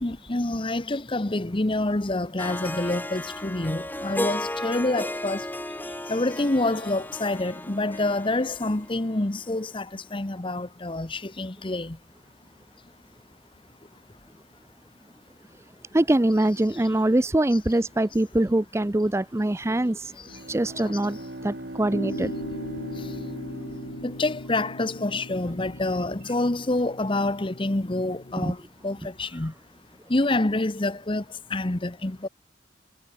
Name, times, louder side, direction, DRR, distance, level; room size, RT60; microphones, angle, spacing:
voice 1, 0.0-5.5 6.1-12.0 17.5-17.6 20.8-20.9 24.0-29.5 30.1-31.2 31.5-32.3, left 2 dB, 30° left, 0.9 m, -27 dB
Harp, 2.4-9.6, left 1 dB, 10° left, 5.8 m, -34 dB
voice 2, 15.9-20.1 20.5-22.3 28.4-28.5, right 1 dB, 15° right, 0.5 m, -23 dB
Bowed string instrument, 20.1-24.8, right 1 dB, 60° right, 2.4 m, -40 dB
sound 1, 21.9-28.3, left 1 dB, 85° left, 2.9 m, -38 dB
head